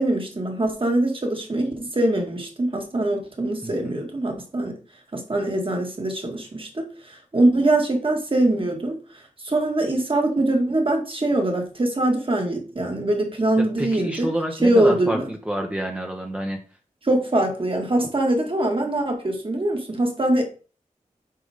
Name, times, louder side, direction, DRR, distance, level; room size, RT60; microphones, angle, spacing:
voice 1, 0.0-4.7 5.1-9.0 9.4-14.3 14.6-15.3 17.0-20.4, right 1 dB, 40° right, 2 dB, 2.0 m, -23 dB
voice 2, 3.6-4.0 13.6-16.6, equal, 10° right, 2 dB, 0.9 m, -28 dB
7.6 x 5.0 x 3.6 m, 0.37 s
wide cardioid pair, 70°, 14 cm